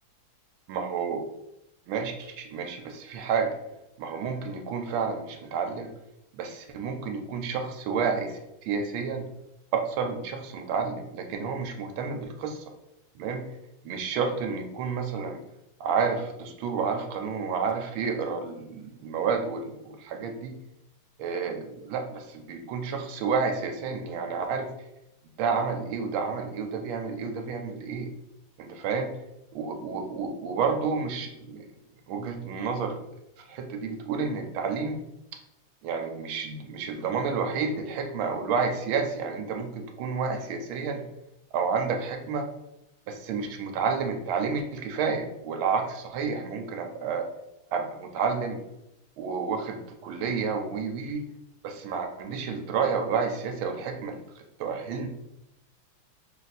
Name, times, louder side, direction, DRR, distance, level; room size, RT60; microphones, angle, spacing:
voice 1, 0.7-1.2 1.9-3.5 4.0-5.9 6.4-9.2 9.7-12.6 13.2-13.4 13.8-15.4 15.8-20.5 21.2-24.7 25.4-28.1 28.6-29.1 29.5-31.7 32.1-33.0 33.5-35.0 35.8-41.0 41.5-42.5 43.1-47.3 47.7-48.6 49.2-51.2 51.6-54.2 54.6-55.1, right 5 dB, 80° right, 4 dB, 1.4 m, -30 dB
3.7 x 2.5 x 4.0 m, 0.86 s
omnidirectional pair, 2.3 m